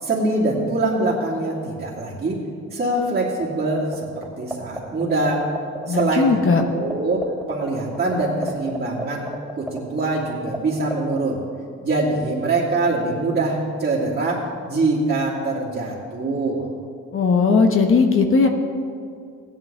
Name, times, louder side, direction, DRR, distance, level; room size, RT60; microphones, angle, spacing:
voice 1, 0.0-2.4 2.7-5.5 5.9-6.4 6.7-9.3 9.6-11.4 11.8-16.6, right 2 dB, 40° right, -10 dB, 2.8 m, -23 dB
sound 1, 3.4-3.9 4.2-6.3 6.6-6.7 6.9-10.6 10.8-11.2, right 1 dB, ahead, 2.5 m, -28 dB
voice 2, 5.9-6.6 17.1-18.5, left 4 dB, 45° left, 4 dB, 1.3 m, -17 dB
16.0 x 11.5 x 3.5 m, 2.4 s
cardioid pair, 90°, 30 cm